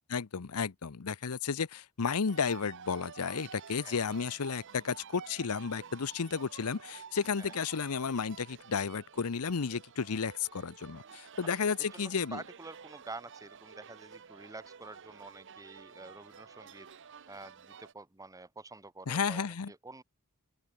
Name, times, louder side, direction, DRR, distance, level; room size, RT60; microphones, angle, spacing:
voice 1, 0.1-12.4 19.1-19.7, left 5 dB, 80° left, 0.7 m, -33 dB
sound 1, 2.3-17.9, right 6 dB, 55° right, 0.9 m, -51 dB
voice 2, 11.9-16.9 17.3-20.0, right 3 dB, 15° right, 1.0 m, -48 dB
open air
head